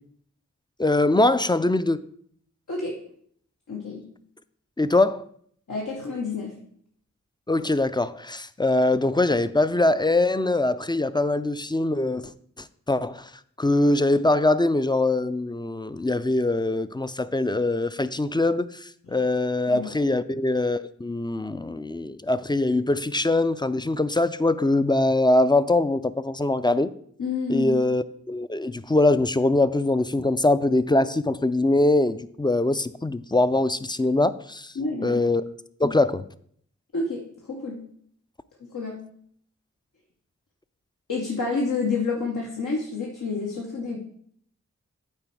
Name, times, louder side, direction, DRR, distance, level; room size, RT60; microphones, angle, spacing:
voice 1, 0.8-2.0 4.8-5.2 7.5-12.3 12.9-13.3 13.6-26.9 27.5-34.7 35.0-35.4 35.8-36.3, left 2 dB, 15° left, 0.3 m, -22 dB
voice 2, 3.7-4.1 5.7-6.5 19.7-19.9 27.2-27.7 34.7-35.2 36.9-37.8 38.7-39.1 41.1-44.0, left 4 dB, 80° left, 1.1 m, -29 dB
8.8 x 4.2 x 4.6 m
wide cardioid pair, 50°, 31 cm